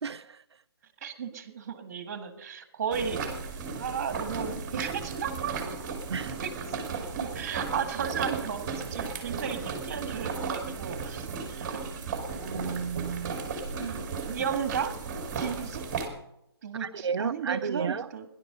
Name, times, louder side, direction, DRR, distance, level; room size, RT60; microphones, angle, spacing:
voice 1, 0.0-0.4 6.1-6.4 12.4-13.4 13.8-14.1 16.8-18.1, right 6 dB, 85° right, 0.5 m, -33 dB
voice 2, 1.0-3.2 3.7-5.5 6.4-6.5 7.2-11.8 14.3-14.9 15.3-15.9 16.6-18.2, right 7 dB, 35° right, 1.8 m, -34 dB
sound 1, 2.9-16.1, right 5 dB, 20° right, 2.3 m, -35 dB
17.0 x 11.0 x 5.5 m
hypercardioid pair, 170°, 13 cm